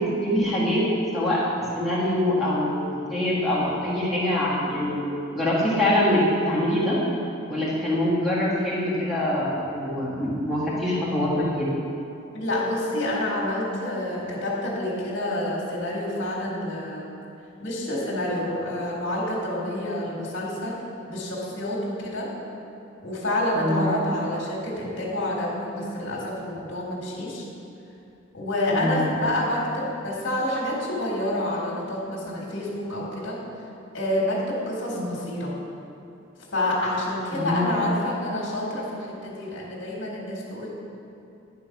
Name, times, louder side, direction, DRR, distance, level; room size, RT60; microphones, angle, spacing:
voice 1, 0.2-0.8 1.1-5.0 5.3-6.2 6.5-7.0 7.5-11.7 23.5-23.9 28.7-29.1 34.9-35.2 37.3-37.8, left 1 dB, ahead, -8 dB, 1.6 m, -24 dB
voice 2, 12.3-17.1 17.6-20.8 21.1-22.3 23.0-27.4 28.3-33.4 33.9-35.5 36.5-40.7, left 1 dB, 65° left, -4 dB, 1.5 m, -28 dB
9.8 x 3.8 x 5.7 m, 2.7 s
head